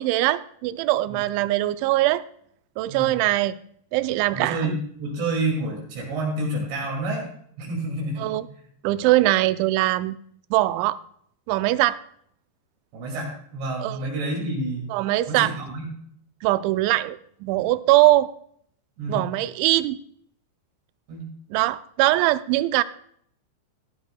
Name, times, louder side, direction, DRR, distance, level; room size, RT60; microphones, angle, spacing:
voice 1, 0.0-2.2 2.8-3.6 3.9-4.8 8.2-8.4 8.8-10.2 10.5-11.0 11.5-12.0 13.8-14.0 14.9-15.6 16.4-18.3 19.1-20.0 21.5-22.8, right 16 dB, 90° right, 14 dB, 2.9 m, -21 dB
voice 2, 2.9-3.2 4.3-7.3 7.6-8.7 12.9-14.8 15.3-15.9 19.0-19.2 21.1-21.3, right 2 dB, 75° right, -2 dB, 4.6 m, -29 dB
15.5 x 13.0 x 2.2 m, 0.66 s
omnidirectional pair, 5.2 m